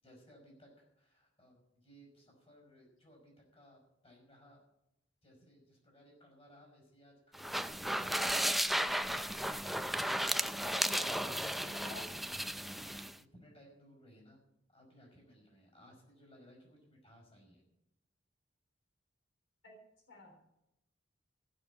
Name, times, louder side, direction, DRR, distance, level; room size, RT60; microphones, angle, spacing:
voice 1, 0.0-4.6 5.2-8.5 12.8-14.4 14.7-17.6, equal, 30° left, 0 dB, 5.4 m, -61 dB
sound 1, 7.3-13.1, equal, ahead, 0.4 m, -34 dB
voice 2, 10.3-12.1 19.6-19.8 20.1-20.4, left 2 dB, 85° left, 0 dB, 3.6 m, -51 dB
15.0 x 6.5 x 8.4 m, 0.85 s
head